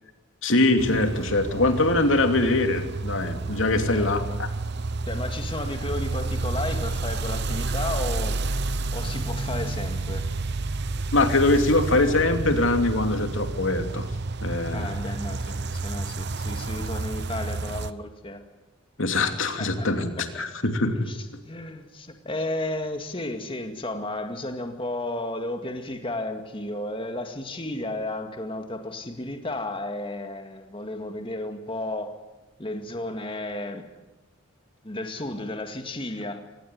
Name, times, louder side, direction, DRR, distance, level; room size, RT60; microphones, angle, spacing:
voice 1, 0.4-4.5 11.1-14.1 14.4-14.9 19.0-21.0, left 2 dB, 65° left, 6 dB, 2.9 m, -23 dB
sound 1, 0.8-17.9, right 3 dB, 55° right, 0.9 m, -30 dB
voice 2, 3.9-4.4 5.1-8.3 8.9-10.2 14.7-18.4 19.3-19.9 20.2-20.4 21.1-32.2 32.6-33.9 34.8-36.5, left 1 dB, 25° left, 6 dB, 2.1 m, -33 dB
25.0 x 19.5 x 9.6 m, 1.0 s
head